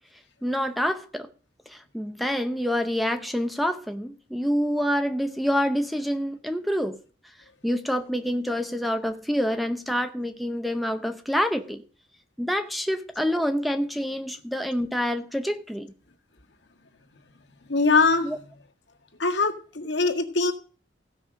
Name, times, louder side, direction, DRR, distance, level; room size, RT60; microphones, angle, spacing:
voice 1, 0.4-1.3 1.7-7.0 7.6-11.8 12.4-15.9 18.2-18.4, equal, ahead, 0.6 m, -27 dB
voice 2, 17.7-18.3 19.2-20.5, left 3 dB, 85° left, 1.8 m, -22 dB
15.5 x 5.4 x 6.3 m
head